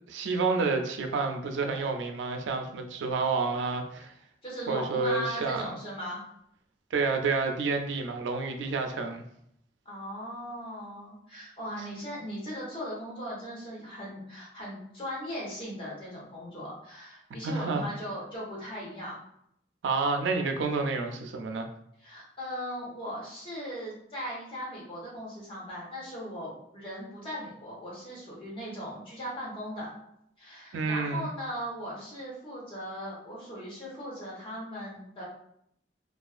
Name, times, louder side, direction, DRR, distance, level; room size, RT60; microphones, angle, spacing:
voice 1, 0.1-4.1 4.7-5.7 6.9-9.2 17.4-17.8 19.8-21.7 30.7-31.3, right 4 dB, 90° right, 5 dB, 0.4 m, -29 dB
voice 2, 4.4-6.2 9.8-19.2 22.0-29.9 30.4-35.2, equal, 30° left, -5 dB, 0.9 m, -38 dB
2.4 x 2.3 x 2.4 m, 0.72 s
head